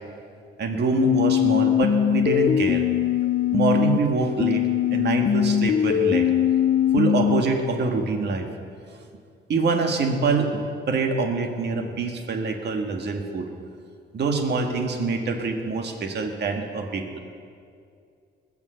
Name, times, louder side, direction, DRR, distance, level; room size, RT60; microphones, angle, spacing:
voice 1, 0.6-2.8 3.5-4.6 4.9-6.3 6.9-8.5 9.5-13.5 14.1-17.2, right 3 dB, 60° right, 4 dB, 1.8 m, -25 dB
sound 1, 1.0-4.0 4.4-7.4, left 9 dB, 45° left, 0.5 m, -21 dB
20.5 x 7.1 x 6.9 m, 2.3 s
cardioid pair, 90°, 20 cm